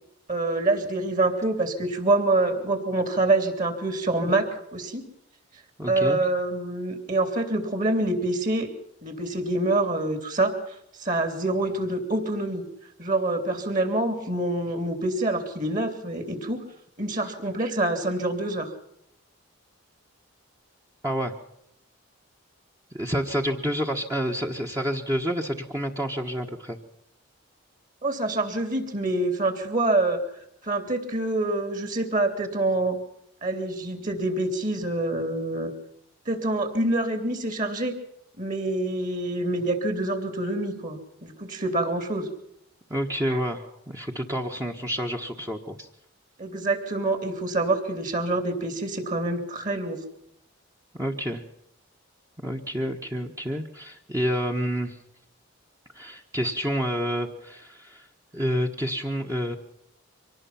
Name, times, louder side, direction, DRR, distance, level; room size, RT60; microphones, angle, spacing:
voice 1, 0.3-5.0 5.9-8.7 9.0-12.6 13.0-16.6 17.0-18.7 28.0-30.2 30.6-33.0 33.4-35.7 36.2-37.9 38.4-42.3 43.3-43.4 46.4-50.0, right 2 dB, 40° right, 8 dB, 3.3 m, -26 dB
voice 2, 5.8-6.2 21.0-21.3 22.9-26.8 42.9-45.9 50.9-51.4 52.4-55.0 55.9-58.1 58.3-59.6, equal, 15° right, 1 dB, 1.4 m, -29 dB
25.0 x 19.0 x 5.9 m, 0.75 s
head